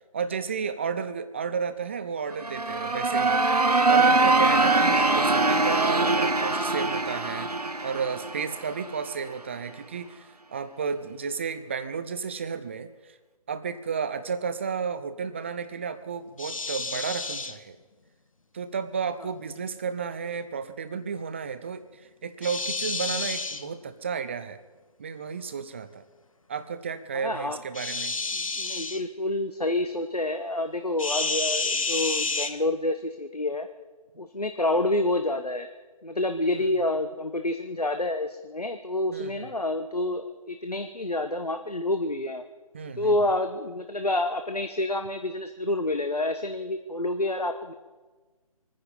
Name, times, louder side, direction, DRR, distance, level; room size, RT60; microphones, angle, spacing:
voice 1, 0.1-3.4 3.9-13.2 13.5-17.8 18.5-24.6 25.0-26.0 26.5-28.1 36.5-36.7 39.1-39.5 42.7-43.1, right 6 dB, 20° right, 11 dB, 0.6 m, -32 dB
sound 1, 2.3-9.1, right 3 dB, 85° right, 1.1 m, -23 dB
sound 2, 16.4-17.5 22.4-23.6 27.8-29.0 31.0-32.5, left 3 dB, 60° left, 1.4 m, -30 dB
voice 2, 27.1-27.6 28.3-33.7 34.2-35.7 36.0-42.4 43.0-47.7, left 1 dB, 90° left, 7 dB, 1.2 m, -28 dB
25.0 x 10.0 x 5.3 m, 1.3 s
figure-of-eight pair, 150°, 19 cm